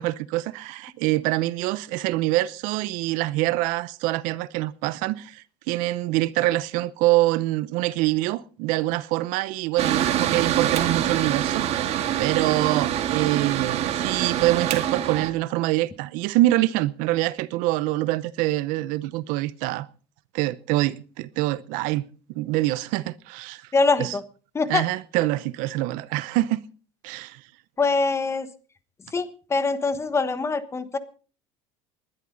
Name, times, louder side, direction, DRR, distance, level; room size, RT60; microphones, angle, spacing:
voice 1, 0.0-19.9 20.3-23.7 24.0-24.2 24.7-26.6 27.0-27.4, right 17 dB, 70° right, 0.8 m, -25 dB
Mechanical fan, 9.8-15.3, right 10 dB, 50° right, 1.9 m, -25 dB
voice 2, 23.7-24.2 24.5-24.8 27.8-28.5 29.1-31.0, left 3 dB, 20° left, 1.2 m, -23 dB
20.5 x 11.5 x 4.0 m
cardioid pair, 135°, 14 cm